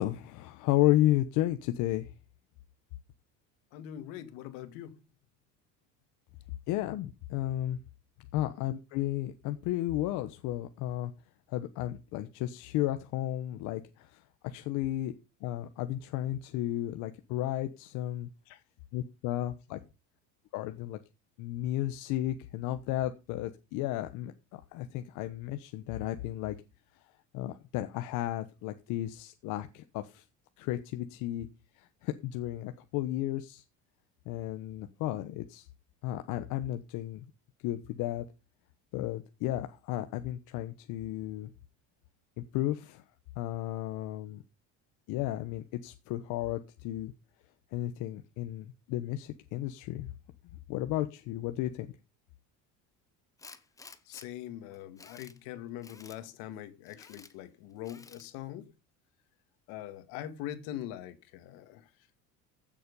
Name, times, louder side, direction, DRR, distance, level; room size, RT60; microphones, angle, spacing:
voice 1, 0.0-2.1 6.7-7.8 8.3-11.1 11.5-15.1 15.4-18.3 18.9-19.8 20.5-21.0 21.4-26.5 27.3-30.2 30.6-31.5 31.8-33.6 34.3-35.7 36.0-37.2 37.6-38.2 38.9-41.5 42.5-43.0 43.4-44.4 45.1-47.1 47.7-50.1 50.7-51.9, left 14 dB, 60° left, 1.1 m, -33 dB
voice 2, 3.7-5.0 8.2-8.3 18.5-18.6 19.7-19.8 54.1-58.7 59.7-61.9, left 12 dB, 75° left, 2.1 m, -42 dB
Tools, 53.4-54.3 54.7-55.4 55.8-56.2 56.9-57.3 57.8-58.3, left 4 dB, 10° left, 0.8 m, -52 dB
15.5 x 7.7 x 5.4 m
cardioid pair, 175°, 35 cm